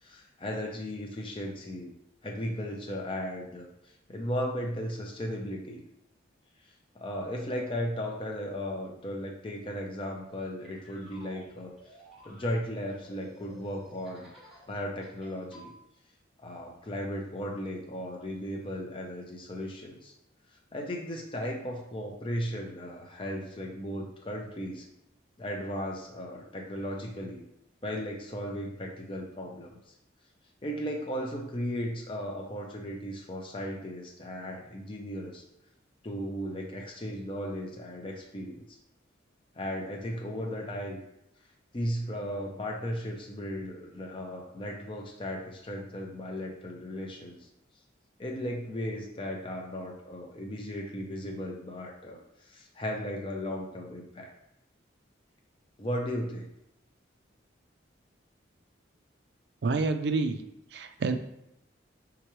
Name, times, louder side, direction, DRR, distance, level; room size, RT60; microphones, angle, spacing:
voice 1, 0.0-1.9 2.2-5.8 6.9-11.7 12.2-14.3 14.7-15.7 16.4-20.1 20.5-24.9 25.4-27.4 27.8-29.9 30.6-35.4 36.0-38.8 39.5-41.0 41.7-47.5 48.2-54.3 55.8-56.5, equal, 25° left, 0 dB, 0.5 m, -36 dB
sound 1, 10.3-14.7 15.0-15.7, equal, ahead, 1.1 m, -53 dB
voice 2, 59.6-60.4 60.7-61.1, right 3 dB, 55° right, 7 dB, 0.4 m, -28 dB
4.6 x 3.7 x 3.0 m, 0.81 s
head